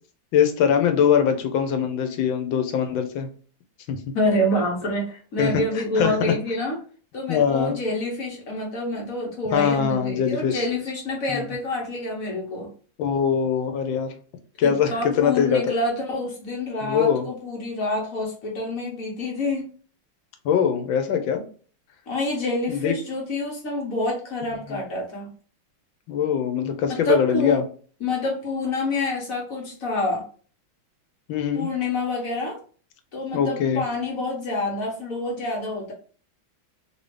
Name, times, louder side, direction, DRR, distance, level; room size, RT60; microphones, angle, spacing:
voice 1, 0.3-3.3 3.9-4.0 5.4-6.3 7.3-7.7 9.5-10.6 11.3-11.4 13.0-14.1 14.6-15.7 16.8-17.3 20.4-21.4 22.7-22.9 24.7-24.8 26.1-27.6 31.3-31.7 33.3-33.8, left 8 dB, 80° left, 7 dB, 1.4 m, -22 dB
voice 2, 4.1-6.8 7.1-12.7 14.6-19.7 22.1-25.3 26.9-27.6 28.0-30.2 31.5-32.6 33.1-35.9, left 1 dB, 50° left, -1 dB, 1.3 m, -27 dB
3.4 x 2.7 x 3.2 m, 0.42 s
omnidirectional pair, 2.2 m